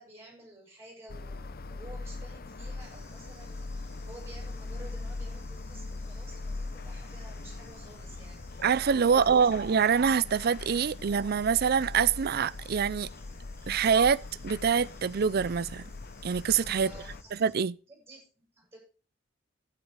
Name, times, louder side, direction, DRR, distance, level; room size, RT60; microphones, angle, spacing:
voice 1, 0.0-8.7 9.0-9.5 16.8-17.3 17.9-18.8, right 2 dB, 15° right, 7.6 m, -52 dB
sound 1, 1.1-17.2, left 3 dB, 50° left, 0.8 m, -41 dB
Bird / Insect, 2.8-17.5, left 1 dB, 15° left, 2.9 m, -57 dB
voice 2, 8.6-13.1 13.7-15.8 16.2-16.9 17.3-17.8, right 6 dB, 55° right, 0.4 m, -25 dB
12.0 x 9.7 x 4.9 m
head